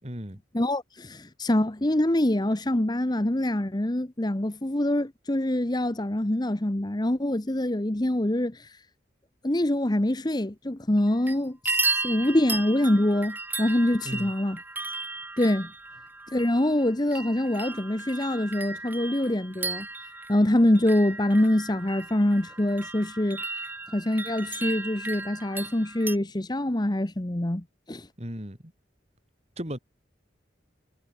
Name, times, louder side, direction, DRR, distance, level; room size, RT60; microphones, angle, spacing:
voice 1, 0.0-0.4 14.0-14.3 28.2-28.7 29.6-29.8, equal, 35° right, 4.4 m, -36 dB
voice 2, 0.5-8.8 9.4-14.6 15.4-15.7 16.3-19.9 20.3-23.4 23.9-28.1, left 1 dB, 20° left, 0.9 m, -25 dB
sound 1, 11.0-11.4 11.7-26.2, right 3 dB, 10° right, 1.1 m, -35 dB
head